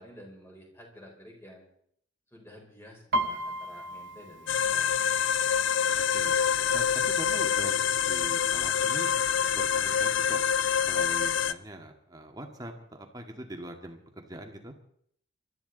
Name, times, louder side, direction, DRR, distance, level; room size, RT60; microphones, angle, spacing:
voice 1, 0.0-1.6 2.3-5.0, equal, 10° left, 0 dB, 4.6 m, -50 dB
Piano, 3.1-6.8 7.1-7.5 7.9-8.5 9.1-9.2 9.4-10.5 10.8-10.9, right 1 dB, 65° right, 1.0 m, -35 dB
sound 1, 4.5-11.5, left 8 dB, 65° left, 0.6 m, -26 dB
voice 2, 5.9-6.4 6.7-9.1 9.5-10.4 10.8-14.7, right 1 dB, 20° right, 3 dB, 2.0 m, -42 dB
26.0 x 13.0 x 4.0 m, 0.66 s
head